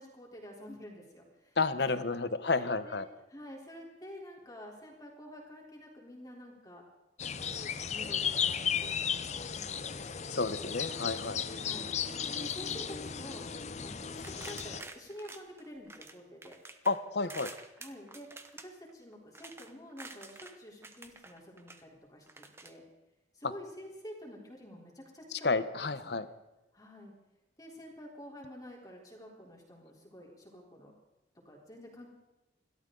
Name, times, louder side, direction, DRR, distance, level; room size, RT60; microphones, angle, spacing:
voice 1, 0.0-3.0 3.3-6.8 7.4-10.7 11.5-12.0 12.4-13.4 13.8-16.6 17.8-18.3 18.6-22.8 23.3-25.5 25.7-26.2 26.7-27.1 27.6-30.9 31.5-32.1, equal, 20° left, -1 dB, 3.6 m, -49 dB
voice 2, 1.6-3.1 10.3-11.4 16.9-17.5 25.4-26.3, left 3 dB, 60° left, 13 dB, 0.9 m, -31 dB
sound 1, 7.2-14.8, left 7 dB, 35° left, 0.6 m, -35 dB
sound 2, 14.2-16.1 16.4-20.6 20.8-21.8 22.3-22.7, right 3 dB, 15° right, 0.9 m, -49 dB
28.5 x 13.0 x 3.9 m, 1.0 s
head